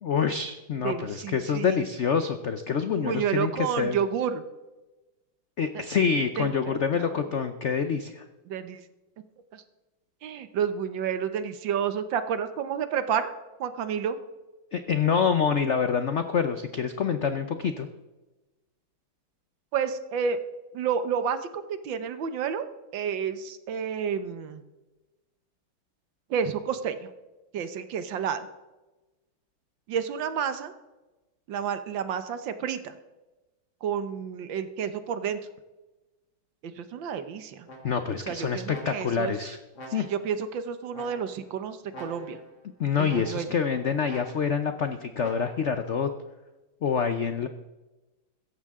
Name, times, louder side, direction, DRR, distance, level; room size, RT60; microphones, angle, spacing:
voice 1, 0.0-4.0 5.6-8.2 14.7-17.9 37.8-39.6 39.9-40.1 42.8-46.1 46.8-47.5, left 6 dB, 85° left, 8 dB, 0.6 m, -26 dB
voice 2, 0.8-1.9 3.0-4.4 5.7-5.8 6.4-7.2 8.5-8.8 9.5-9.6 10.2-13.3 13.6-14.2 19.7-20.4 20.7-22.6 22.9-24.6 26.3-27.1 27.5-28.5 29.9-30.7 31.5-33.0 33.8-35.4 36.6-37.7 38.3-39.3 39.9-42.4 43.0-43.5, right 7 dB, 70° right, 11 dB, 1.6 m, -30 dB
sound 1, 37.7-38.2 38.7-39.3 39.7-40.4 40.9-41.5 41.9-42.6 43.1-43.7 44.1-44.7 45.2-45.8, right 1 dB, 50° left, 2.9 m, -46 dB
16.0 x 14.0 x 3.7 m, 1.1 s
omnidirectional pair, 2.2 m